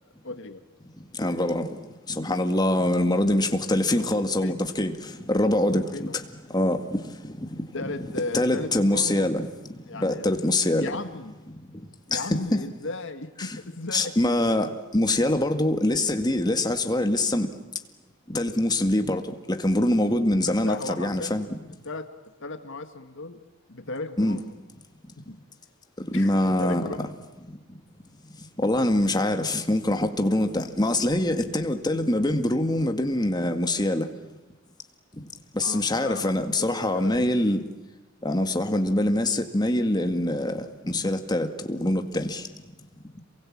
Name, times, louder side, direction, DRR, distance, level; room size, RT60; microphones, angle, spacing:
voice 1, 0.2-0.6 3.9-4.1 4.4-4.6 5.9-6.2 7.7-9.3 9.9-10.3 10.8-11.3 12.1-14.1 20.6-21.4 21.8-22.1 22.4-23.4 23.7-24.5 25.3-25.4 26.1-27.0 35.6-37.4, left 2 dB, 60° left, 1.8 m, -36 dB
voice 2, 1.2-1.7 2.1-4.9 5.3-6.2 6.5-7.0 7.2-7.5 8.3-9.5 10.0-10.9 12.1-12.2 12.5-12.6 13.4-13.6 13.9-17.5 18.3-19.2 19.5-21.5 24.2-24.4 26.1-26.8 28.6-34.1 35.6-37.6 38.2-42.4, left 1 dB, 20° left, 1.9 m, -24 dB
28.0 x 23.5 x 8.7 m
head